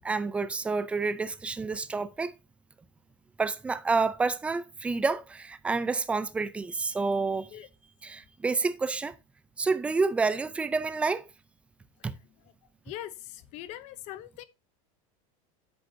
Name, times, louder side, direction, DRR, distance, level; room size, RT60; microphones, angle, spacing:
voice 1, 0.0-2.3 3.4-7.5 8.0-9.1 9.6-11.2 12.0-12.1, right 4 dB, 5° right, 0.4 m, -29 dB
voice 2, 12.9-14.4, left 13 dB, 40° left, 0.8 m, -41 dB
9.5 x 7.7 x 2.7 m
supercardioid pair, 175°, 18 cm